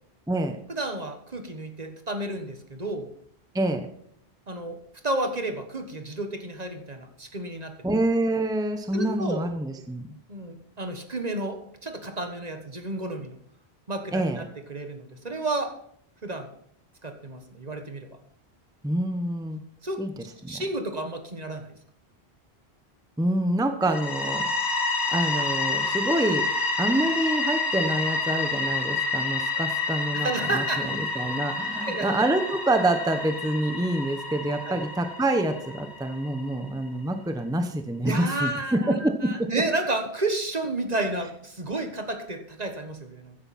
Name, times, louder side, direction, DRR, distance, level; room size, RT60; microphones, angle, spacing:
voice 1, 0.7-3.1 4.5-4.8 5.0-7.7 8.9-9.4 10.3-13.4 13.9-15.8 16.2-16.5 17.0-18.1 19.8-20.0 20.5-21.7 30.1-31.3 31.8-32.1 34.7-34.8 38.1-43.4, right 2 dB, 40° right, 7 dB, 1.4 m, -31 dB
voice 2, 3.5-3.9 7.8-10.1 14.1-14.4 18.8-19.6 20.0-20.1 20.4-20.6 23.2-24.5 25.1-26.5 26.8-39.5, right 1 dB, 5° right, 7 dB, 1.0 m, -26 dB
sound 1, 23.8-36.5, left 3 dB, 45° left, 2.1 m, -29 dB
14.5 x 9.8 x 4.2 m, 0.66 s
omnidirectional pair, 1.1 m